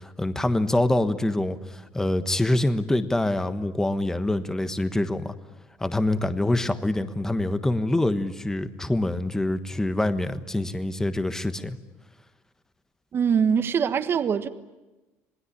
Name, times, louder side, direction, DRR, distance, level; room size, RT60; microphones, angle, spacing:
voice 1, 0.0-5.3 5.8-11.8, left 1 dB, 10° left, 10 dB, 1.3 m, -25 dB
voice 2, 13.1-14.5, right 7 dB, 40° right, 10 dB, 1.5 m, -23 dB
27.0 x 19.5 x 9.9 m, 1.1 s
cardioid pair, 110°, 6 cm